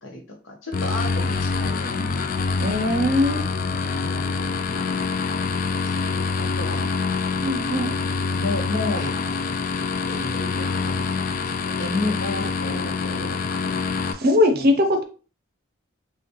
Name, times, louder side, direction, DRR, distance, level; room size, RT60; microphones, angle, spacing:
voice 1, 0.0-2.3 2.8-3.5 4.0-5.3 5.9-6.9 7.7-9.2 10.1-11.3 11.8-13.8 14.5-14.7, left 2 dB, 65° left, 2 dB, 1.1 m, -33 dB
sound 1, 0.7-14.1, left 4 dB, 45° left, 0.4 m, -25 dB
voice 2, 2.6-3.4 7.4-8.0 14.1-15.0, left 1 dB, 50° right, 6 dB, 0.6 m, -20 dB
5.8 x 2.3 x 3.0 m, 0.37 s
head